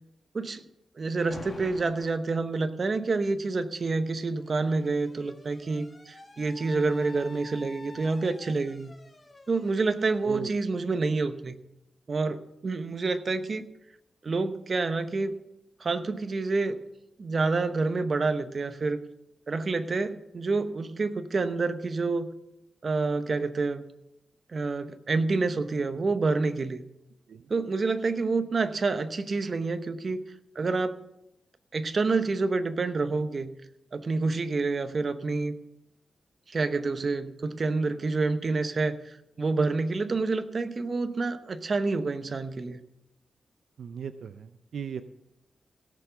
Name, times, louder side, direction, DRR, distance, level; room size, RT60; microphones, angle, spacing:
voice 1, 1.0-8.9 9.5-11.5 12.1-13.6 14.2-15.4 15.8-16.8 17.2-19.0 19.5-22.3 22.8-23.8 24.5-26.8 27.5-30.2 30.5-31.0 31.7-33.5 33.9-35.5 36.5-42.8, right 3 dB, 45° right, 10 dB, 0.9 m, -28 dB
Alarm, 1.3-2.3 3.5-11.2, left 2 dB, 25° left, 1.8 m, -49 dB
voice 2, 43.8-45.0, right 7 dB, 75° right, 10 dB, 0.5 m, -37 dB
17.0 x 7.0 x 5.8 m, 0.86 s
wide cardioid pair, 100°, 0 cm